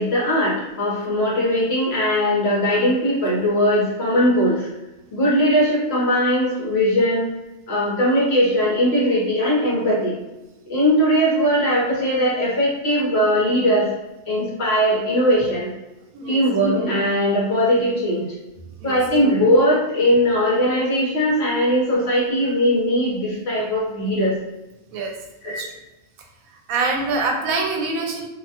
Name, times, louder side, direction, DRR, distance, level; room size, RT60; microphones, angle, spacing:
voice 1, 0.0-4.7 5.1-7.3 7.7-10.2 10.7-13.9 14.3-15.7 16.3-18.3 18.8-24.3 25.4-25.6, equal, 55° left, -5 dB, 1.1 m, -19 dB
voice 2, 26.5-28.3, right 3 dB, 90° right, 2 dB, 1.0 m, -25 dB
2.8 x 2.1 x 2.8 m, 1.0 s
omnidirectional pair, 1.4 m